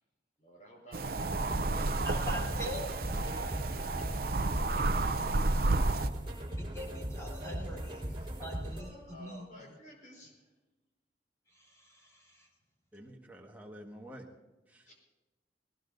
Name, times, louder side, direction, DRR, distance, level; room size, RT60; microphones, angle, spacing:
voice 1, 0.4-1.9 3.5-3.8 5.0-5.1 8.1-8.4 8.8-10.3 14.9-15.0, equal, 45° left, 0 dB, 5.0 m, -53 dB
sound 1, 0.9-6.1, right 2 dB, 55° right, 0.6 m, -31 dB
sound 2, 1.2-8.8, right 1 dB, 30° right, 4.4 m, -39 dB
voice 2, 2.0-2.9 6.6-8.0 8.4-9.7 11.5-12.5, left 1 dB, 15° left, -2 dB, 3.5 m, -43 dB
voice 3, 12.9-14.3 14.7-14.9, equal, 10° right, 0 dB, 1.6 m, -49 dB
19.5 x 19.0 x 2.7 m, 1.1 s
head